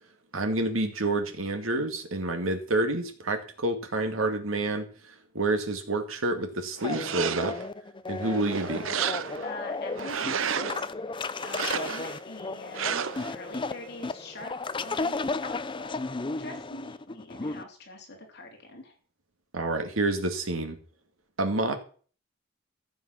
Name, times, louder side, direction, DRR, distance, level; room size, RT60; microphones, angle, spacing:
voice 1, 0.3-4.9 5.3-7.5 8.1-8.9 19.5-20.8 21.4-21.7, right 2 dB, 90° right, 6 dB, 2.3 m, -28 dB
sound 1, 6.8-17.6, left 3 dB, 25° left, 0.6 m, -34 dB
sound 2, 6.8-7.7 8.2-9.5 9.9-10.8 11.4-12.2 12.7-13.3, right 7 dB, 75° right, 0.7 m, -32 dB
voice 2, 9.4-11.1 11.4-16.0 16.4-18.9, left 2 dB, 55° left, 2 dB, 3.3 m, -44 dB
14.5 x 7.5 x 5.9 m, 0.42 s
head